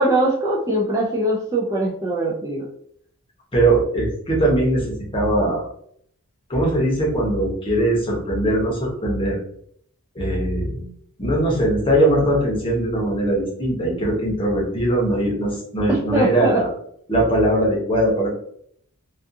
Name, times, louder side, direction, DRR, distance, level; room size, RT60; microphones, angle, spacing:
voice 1, 0.0-2.6 15.9-16.6, right 1 dB, 15° right, -5 dB, 0.3 m, -21 dB
voice 2, 3.5-5.6 6.5-9.4 10.1-10.8 11.2-16.7 17.1-18.3, right 1 dB, 25° left, -3 dB, 0.7 m, -20 dB
2.4 x 2.3 x 2.6 m, 0.66 s
head